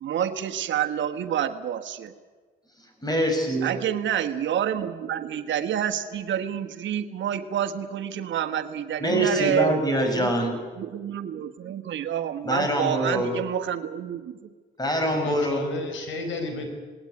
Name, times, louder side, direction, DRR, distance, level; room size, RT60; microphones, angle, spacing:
voice 1, 0.0-2.1 3.6-9.8 10.1-14.4, right 9 dB, 70° right, 6 dB, 1.4 m, -28 dB
voice 2, 3.0-3.8 9.0-10.5 12.4-13.3 14.8-15.7, right 1 dB, 20° left, 4 dB, 6.6 m, -24 dB
voice 3, 15.1-16.7, left 3 dB, 70° left, 7 dB, 4.8 m, -32 dB
19.0 x 18.5 x 9.6 m, 1.4 s
cardioid pair, 90°, 20 cm